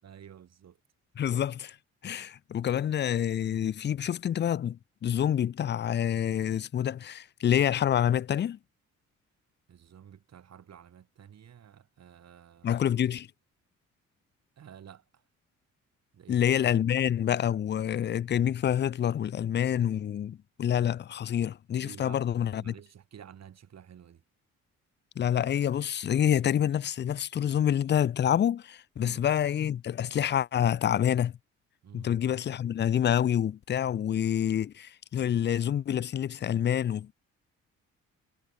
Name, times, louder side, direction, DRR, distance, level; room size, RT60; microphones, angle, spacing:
voice 1, 0.0-0.8 9.7-12.8 14.6-15.2 16.1-16.5 21.8-24.2 29.0-29.3 31.8-32.1, right 9 dB, 60° right, 6.8 m, -51 dB
voice 2, 1.2-1.8 2.0-8.6 12.6-13.3 16.3-22.7 25.2-31.3 31.9-37.1, left 9 dB, 35° left, 0.5 m, -27 dB
cardioid pair, 90°, 30 cm